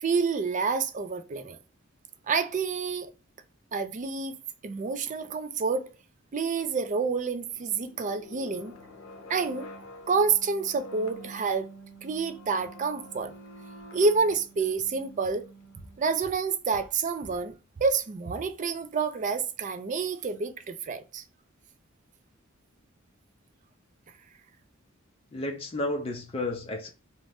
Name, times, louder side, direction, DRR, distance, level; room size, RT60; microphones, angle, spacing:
voice 1, 0.0-1.6 2.3-3.1 3.7-4.4 4.6-5.9 6.3-8.8 9.3-9.7 10.1-11.7 12.0-13.3 13.9-15.4 16.0-17.5 17.8-21.2, right 4 dB, 35° right, 0.4 m, -28 dB
sound 1, 7.5-16.3, equal, 90° left, 0.6 m, -47 dB
voice 2, 25.3-26.9, left 2 dB, 25° left, 0.5 m, -32 dB
2.5 x 2.1 x 3.2 m
head